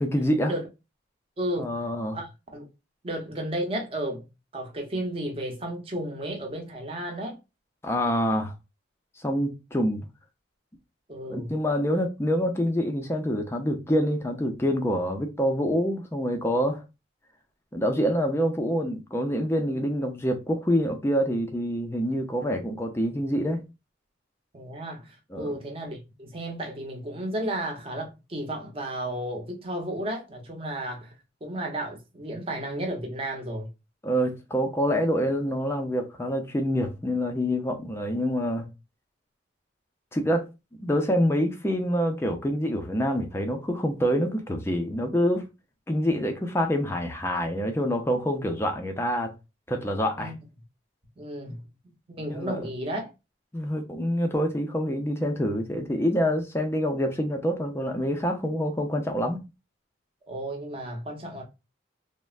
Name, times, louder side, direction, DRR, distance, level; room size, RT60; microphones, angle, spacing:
voice 1, 0.0-0.5 1.6-2.2 7.8-8.5 9.2-10.0 11.2-16.8 17.7-23.6 25.3-25.6 34.0-38.7 40.1-40.4 40.8-45.5 45.9-49.3 49.7-50.3 52.3-52.7 53.5-59.4, equal, 15° left, 0.4 m, -26 dB
voice 2, 1.4-1.8 2.1-2.3 2.5-2.7 3.0-4.3 4.5-7.4 11.1-11.5 24.5-31.1 31.4-33.7 50.2-50.3 51.2-51.6 52.1-53.1 60.3-61.4, right 1 dB, 30° right, 0.6 m, -33 dB
3.2 x 2.1 x 2.3 m
head